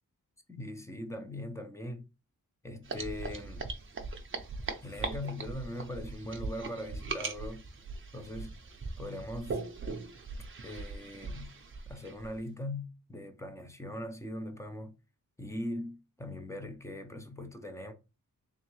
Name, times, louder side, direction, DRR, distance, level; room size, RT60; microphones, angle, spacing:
voice 1, 0.5-2.0 2.6-3.7 4.8-7.6 8.1-8.5 9.0-9.6 10.6-11.5 11.9-14.9 15.4-17.9, left 1 dB, 10° left, 0.5 m, -40 dB
sound 1, 2.8-12.4, right 3 dB, 40° right, 0.6 m, -40 dB
3.6 x 3.2 x 3.1 m
wide cardioid pair, 140°, 33 cm